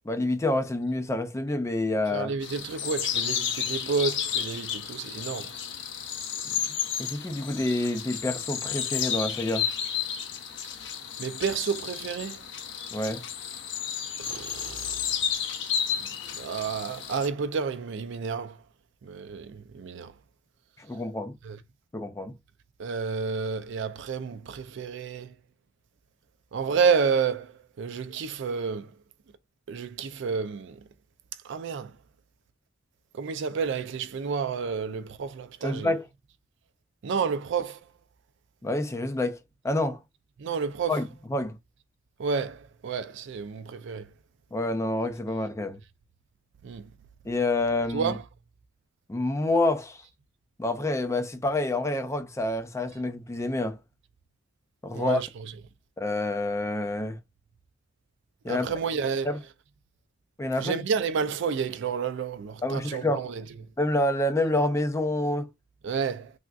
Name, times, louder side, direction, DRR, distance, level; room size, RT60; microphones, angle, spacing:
voice 1, 0.1-2.3 7.0-9.7 12.9-13.2 20.8-21.4 21.9-22.3 35.6-36.0 38.6-39.4 39.6-40.0 40.9-41.6 44.5-45.8 47.3-48.2 49.1-50.0 50.6-53.8 54.8-55.2 56.0-57.2 58.4-58.7 59.2-59.4 60.4-60.8 62.6-63.3 63.8-65.5, left 2 dB, 15° left, 0.4 m, -28 dB
voice 2, 2.1-5.5 11.2-12.4 14.2-15.0 16.0-16.1 16.3-18.6 19.0-20.1 21.4-21.6 22.8-25.3 26.5-28.9 29.7-30.8 31.4-32.0 33.1-35.9 37.0-37.8 40.4-41.0 42.2-44.1 46.6-46.9 47.9-48.2 54.9-55.5 58.5-59.3 60.6-63.4 65.8-66.3, right 5 dB, 65° right, 0.4 m, -30 dB
sound 1, 2.4-17.3, left 8 dB, 65° left, 0.5 m, -32 dB
3.5 x 2.5 x 2.3 m
head